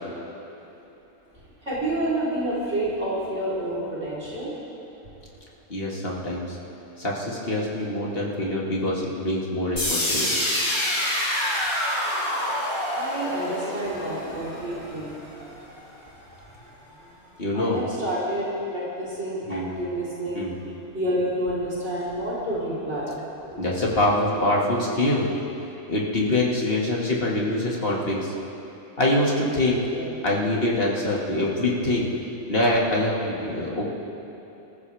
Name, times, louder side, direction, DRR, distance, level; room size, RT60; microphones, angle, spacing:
voice 1, 1.7-4.5 12.9-15.1 17.5-20.5 20.9-23.1 29.9-30.2, right 1 dB, 45° right, -9 dB, 4.4 m, -29 dB
voice 2, 5.7-6.6 7.0-10.3 17.4-17.8 19.5-19.7 20.3-20.6 23.6-25.3 25.9-28.3 29.0-29.8 30.2-32.1 32.5-33.9, left 1 dB, 40° left, -3 dB, 2.4 m, -24 dB
sound 1, 9.8-15.7, left 1 dB, 85° left, 4.3 m, -27 dB
26.0 x 14.5 x 3.5 m, 2.9 s
omnidirectional pair, 1.5 m